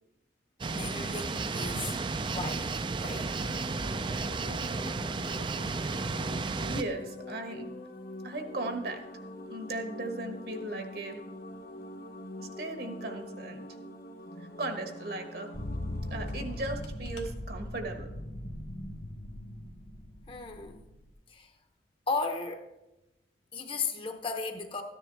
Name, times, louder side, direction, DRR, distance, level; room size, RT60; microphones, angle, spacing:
voice 1, 0.6-1.9 2.3-3.4 5.2-5.5 20.3-20.8 21.3-21.5 22.1-22.7 23.5-24.8, left 4 dB, 30° left, 0.8 m, -35 dB
sound 1, 0.6-6.8, right 4 dB, 25° right, 0.3 m, -33 dB
sound 2, 3.0-16.7, left 1 dB, 55° left, 1.0 m, -44 dB
voice 2, 6.6-7.7 8.2-9.0 9.5-11.2 12.4-13.6 14.4-15.5 16.1-18.1, right 2 dB, 60° right, 1.2 m, -37 dB
sound 3, 15.5-21.1, left 1 dB, 75° left, 1.2 m, -39 dB
13.5 x 10.0 x 3.4 m
head